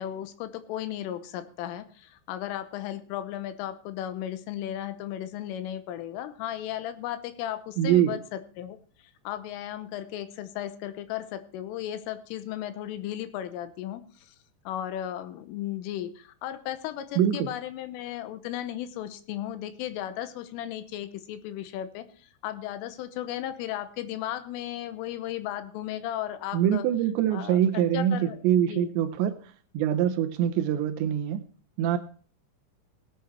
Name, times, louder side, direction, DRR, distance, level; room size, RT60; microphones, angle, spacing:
voice 1, 0.0-8.8 9.3-14.4 14.7-26.9 27.3-28.9, left 12 dB, 90° left, 12 dB, 3.5 m, -35 dB
voice 2, 7.8-8.2 17.2-17.5 26.5-29.3 29.7-31.4 31.8-32.0, right 10 dB, 80° right, 8 dB, 2.8 m, -24 dB
17.0 x 8.6 x 4.5 m, 0.41 s
omnidirectional pair, 5.7 m